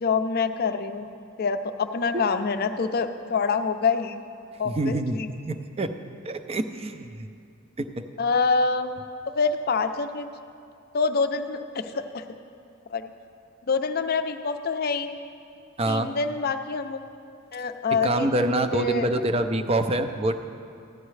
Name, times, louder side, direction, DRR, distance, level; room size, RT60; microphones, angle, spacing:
voice 1, 0.0-4.2 4.6-5.3 8.2-9.0 9.3-10.3 10.9-12.2 12.9-13.1 13.7-15.1 15.9-17.0 17.5-19.1, left 4 dB, 45° left, 9 dB, 0.5 m, -26 dB
voice 2, 4.6-5.2 5.5-5.9 6.2-7.3 7.8-8.1 15.8-16.1 18.0-20.4, right 1 dB, 30° right, 8 dB, 0.4 m, -26 dB
15.0 x 11.0 x 3.2 m, 2.5 s
head